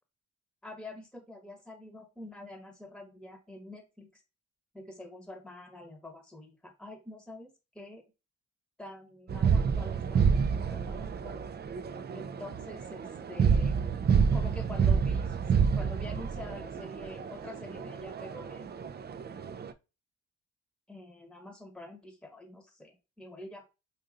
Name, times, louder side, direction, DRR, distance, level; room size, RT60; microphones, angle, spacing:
voice 1, 0.6-4.1 4.7-8.0 8.8-11.4 12.1-13.8 14.3-15.5 15.7-18.9 20.9-23.6, left 1 dB, ahead, 6 dB, 1.0 m, -46 dB
sound 1, 9.3-19.7, right 6 dB, 30° right, 0.4 m, -29 dB
4.9 x 2.6 x 2.5 m, 0.28 s
supercardioid pair, 55°, 36 cm